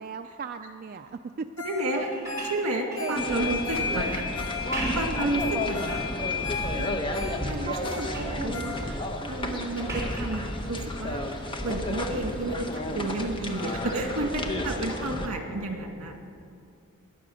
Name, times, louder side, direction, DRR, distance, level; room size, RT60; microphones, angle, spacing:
voice 1, 0.0-1.5 2.0-2.1 3.0-4.0 7.5-8.6 14.0-15.2, right 5 dB, 40° right, 7 dB, 0.3 m, -39 dB
Ringtone, 1.6-5.0 5.4-5.5 5.7-6.0 6.3-9.2 9.6-9.7, left 2 dB, 80° left, 3.6 m, -39 dB
voice 2, 1.6-2.1 2.5-4.2 4.6-6.0 6.7-7.0 7.4-8.1 8.4-11.2 11.6-16.2, right 2 dB, 80° right, 3 dB, 1.8 m, -31 dB
sound 1, 1.8-3.6 4.5-5.3 5.8-6.4 6.9-7.4 7.7-8.4 9.9-10.4 12.2-12.3, right 1 dB, 15° right, 3.1 m, -38 dB
sound 2, 3.1-15.3, left 2 dB, 20° left, 0.9 m, -31 dB
20.5 x 7.5 x 6.3 m, 2.4 s
head